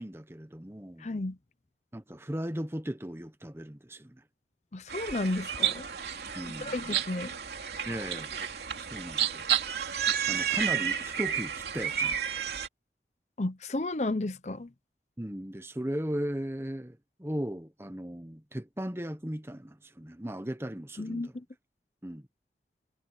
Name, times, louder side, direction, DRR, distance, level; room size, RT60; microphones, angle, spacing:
voice 1, 0.0-1.1 1.9-4.2 6.3-7.0 7.9-8.4 8.8-10.0 10.3-12.2 15.2-21.3 22.0-22.3, equal, 15° right, 1.0 m, -37 dB
voice 2, 1.0-1.4 4.7-5.9 6.6-7.4 13.4-14.7 21.0-21.4, left 2 dB, 40° left, 0.7 m, -33 dB
sound 1, 4.9-12.7, right 9 dB, 70° right, 3.1 m, -31 dB
head